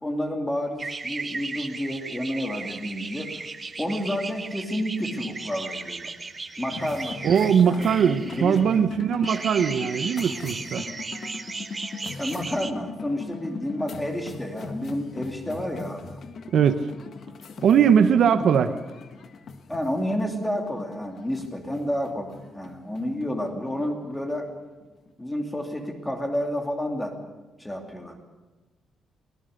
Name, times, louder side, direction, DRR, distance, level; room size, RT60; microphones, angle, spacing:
voice 1, 0.0-3.3 3.8-6.1 6.6-9.0 12.2-16.2 18.2-18.6 19.7-24.5 25.2-27.1 27.6-28.2, equal, 5° left, 3 dB, 2.8 m, -30 dB
sound 1, 0.8-8.7 9.2-12.7, right 4 dB, 20° right, 1.0 m, -36 dB
sound 2, 6.7-25.3, left 5 dB, 45° left, 1.3 m, -41 dB
voice 2, 7.2-10.8 16.5-16.9 17.6-18.7, right 7 dB, 55° right, 9 dB, 0.9 m, -20 dB
23.0 x 18.5 x 6.6 m, 1.2 s
cardioid pair, 175°, 0 cm